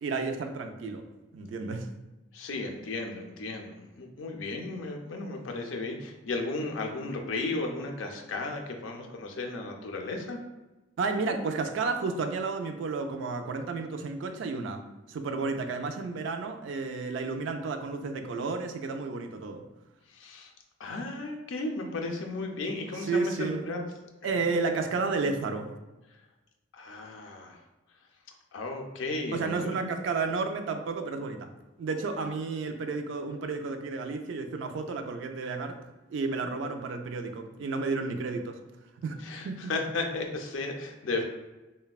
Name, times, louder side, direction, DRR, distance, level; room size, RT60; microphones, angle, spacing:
voice 1, 0.0-1.0 1.3-1.9 11.0-14.8 15.1-19.6 23.0-23.7 24.2-25.7 29.3-31.5 31.8-35.8 36.1-38.6 39.0-39.2 39.4-39.7, right 4 dB, 70° right, 6 dB, 0.3 m, -32 dB
voice 2, 2.3-10.4 20.1-20.5 20.8-23.8 24.2-24.7 26.7-27.6 28.5-29.9 39.2-41.2, left 2 dB, 85° left, 3 dB, 0.5 m, -35 dB
3.2 x 2.1 x 2.3 m, 1.1 s
head